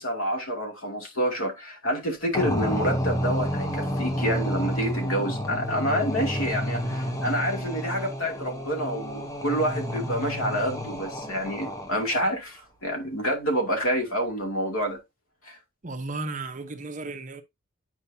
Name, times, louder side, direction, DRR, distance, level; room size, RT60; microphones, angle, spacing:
voice 1, 0.0-15.0 15.4-15.6, equal, 85° left, 2.7 m, -28 dB
sound 1, 2.3-12.2, equal, 15° left, 0.9 m, -30 dB
voice 2, 10.0-10.5 15.8-17.4, right 3 dB, 35° right, 0.9 m, -35 dB
9.8 x 4.6 x 2.7 m
head